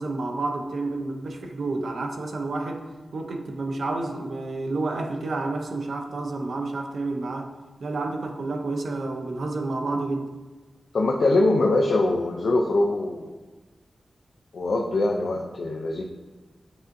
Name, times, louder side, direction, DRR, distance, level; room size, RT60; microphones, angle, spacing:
voice 1, 0.0-7.5 7.8-10.3, right 2 dB, 75° right, 3 dB, 0.5 m, -30 dB
voice 2, 10.9-13.4 14.5-16.0, left 2 dB, 75° left, 0 dB, 0.4 m, -23 dB
7.5 x 2.5 x 2.6 m, 1.3 s
wide cardioid pair, 115°, 0 cm